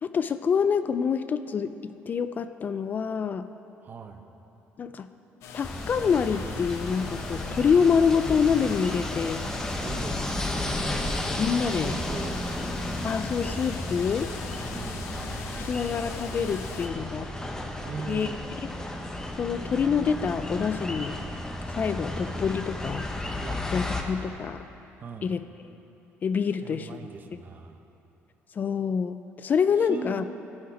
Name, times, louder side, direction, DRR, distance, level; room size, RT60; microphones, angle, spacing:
voice 1, 0.0-3.5 4.8-5.1 5.5-9.4 11.4-12.0 13.0-14.3 15.6-17.3 18.1-18.3 18.6-18.7 19.4-21.2 21.7-23.1 23.7-24.6 25.2-25.4 26.2-26.9 28.6-30.2, left 6 dB, 40° left, 11 dB, 0.3 m, -26 dB
voice 2, 3.8-4.2 9.8-10.3 11.7-12.4 14.7-15.2 17.8-18.3 23.4-23.6 25.0-25.3 26.6-27.8 29.8-30.2, right 5 dB, 40° right, 6 dB, 0.7 m, -39 dB
sound 1, 5.4-16.9, left 6 dB, 75° left, 0.7 m, -42 dB
sound 2, 5.6-24.0, left 1 dB, 10° left, 0.8 m, -33 dB
15.0 x 5.7 x 5.0 m, 2.9 s
cardioid pair, 115°, 5 cm